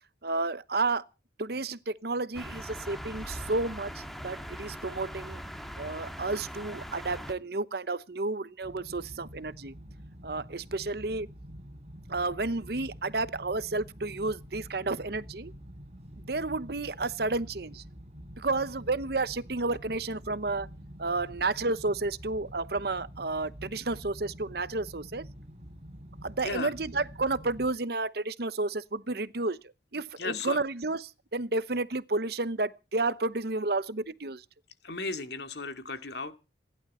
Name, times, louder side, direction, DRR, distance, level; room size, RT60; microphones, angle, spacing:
voice 1, 0.2-1.0 1.4-5.4 5.8-9.7 10.2-11.3 12.1-15.5 16.3-17.8 18.4-20.7 21.0-25.3 26.2-34.4, right 3 dB, 55° right, 0.9 m, -31 dB
sound 1, 2.3-7.3, equal, ahead, 1.9 m, -41 dB
sound 2, 8.6-27.7, equal, 35° right, 4.4 m, -47 dB
voice 2, 30.2-30.6 34.8-36.3, left 3 dB, 60° left, 2.6 m, -35 dB
28.0 x 11.5 x 4.3 m
head